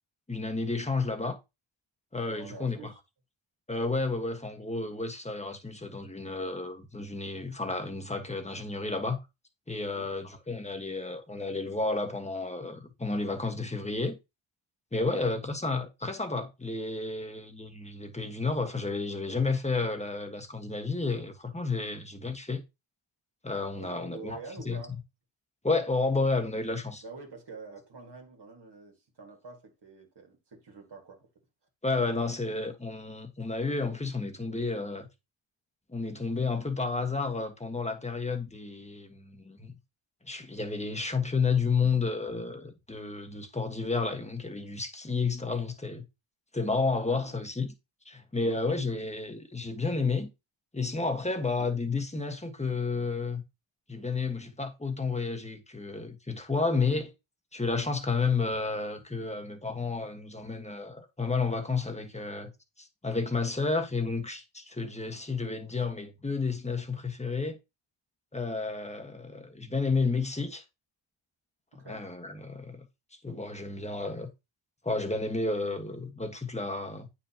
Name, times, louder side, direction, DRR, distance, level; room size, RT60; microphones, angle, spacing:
voice 1, 0.3-1.4 2.1-2.9 3.7-9.2 9.7-14.2 14.9-22.6 23.4-24.4 24.6-24.8 25.6-27.0 31.8-35.1 35.9-39.7 40.2-46.0 46.5-47.7 48.0-50.3 50.7-53.4 53.9-57.1 57.5-62.5 62.8-67.6 68.3-70.6 71.8-72.8 73.2-74.3 74.8-77.1, left 4 dB, 15° left, 1.5 m, -31 dB
voice 2, 2.3-3.0 9.8-10.1 15.0-15.3 23.8-25.0 27.0-31.3 47.1-47.4 48.4-48.6 51.6-51.7 71.8-72.1, right 4 dB, 55° right, 2.1 m, -46 dB
8.9 x 5.7 x 2.9 m
wide cardioid pair, 100°, 48 cm